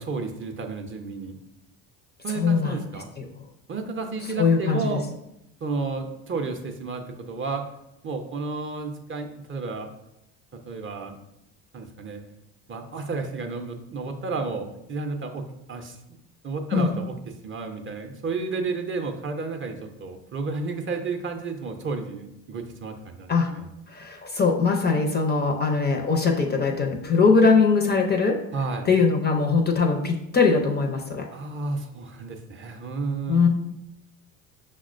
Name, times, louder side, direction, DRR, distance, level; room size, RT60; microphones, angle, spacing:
voice 1, 0.0-1.4 2.2-3.1 3.7-5.0 5.6-7.7 8.0-9.9 10.5-11.1 11.7-12.2 12.7-16.0 16.4-17.1 17.4-23.7 28.5-28.9 31.3-33.4, right 4 dB, 30° right, 4 dB, 0.5 m, -32 dB
voice 2, 2.3-2.8 3.2-3.3 4.4-5.0 16.7-16.9 23.3-23.5 23.9-28.4 28.9-31.3 33.3-33.5, left 4 dB, 25° left, 3 dB, 0.4 m, -21 dB
5.7 x 2.1 x 2.4 m, 0.84 s
hypercardioid pair, 70°, 41 cm